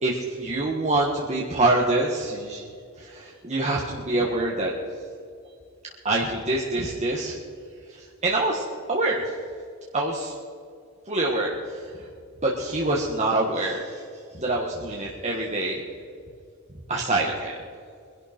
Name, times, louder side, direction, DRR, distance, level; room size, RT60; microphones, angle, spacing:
voice 1, 0.0-2.7 3.0-4.7 6.0-7.4 7.9-9.3 9.9-10.3 11.1-12.1 12.4-14.0 14.3-15.8 16.9-17.5, right 2 dB, 35° right, -2 dB, 1.6 m, -25 dB
22.0 x 11.5 x 4.4 m, 2.3 s
head